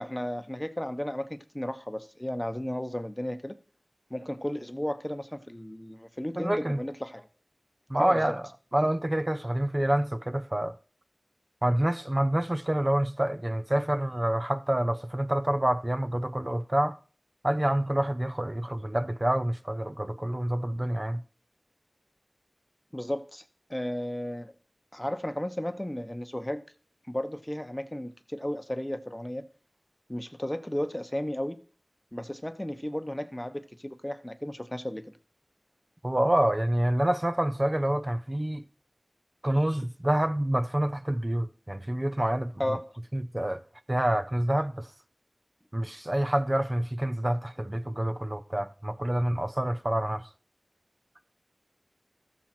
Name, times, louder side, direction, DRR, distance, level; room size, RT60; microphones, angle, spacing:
voice 1, 0.0-3.5 4.1-7.3 8.0-8.3 22.9-23.4 23.7-24.5 24.9-26.6 27.1-29.4 30.1-31.6 32.1-35.0 42.6-42.8, left 1 dB, 20° left, 0.9 m, -34 dB
voice 2, 6.4-6.8 7.9-8.4 8.7-10.7 11.6-17.0 17.4-21.2 36.0-38.6 39.4-42.8 43.1-44.9 45.7-50.3, right 1 dB, 40° right, 0.6 m, -27 dB
14.0 x 7.4 x 4.4 m
wide cardioid pair, 45°, 0 cm